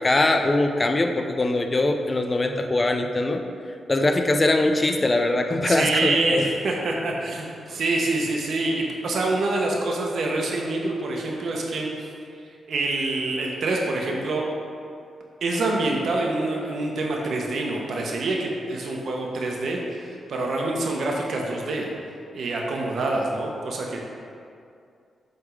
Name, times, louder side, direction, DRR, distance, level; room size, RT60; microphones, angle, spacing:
voice 1, 0.0-3.4 3.9-6.4, left 2 dB, 30° left, 5 dB, 0.5 m, -22 dB
voice 2, 5.6-11.9 12.7-14.4 15.4-21.9 22.3-24.0, right 2 dB, 70° right, -1 dB, 1.1 m, -26 dB
7.9 x 3.6 x 4.9 m, 2.4 s
cardioid pair, 90°, 0 cm